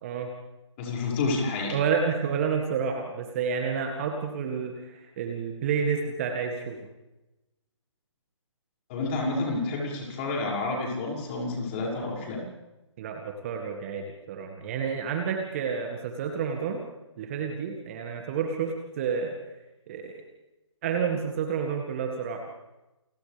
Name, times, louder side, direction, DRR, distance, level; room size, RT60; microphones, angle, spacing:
voice 1, 0.0-0.3 1.7-6.8 13.0-16.8 17.2-19.4 19.9-20.2 20.8-22.4, right 6 dB, 25° right, 3 dB, 2.0 m, -30 dB
voice 2, 0.8-1.8 8.9-12.4, left 3 dB, 25° left, -2 dB, 6.3 m, -29 dB
30.0 x 25.0 x 3.5 m, 0.98 s
figure-of-eight pair, 145°, 16 cm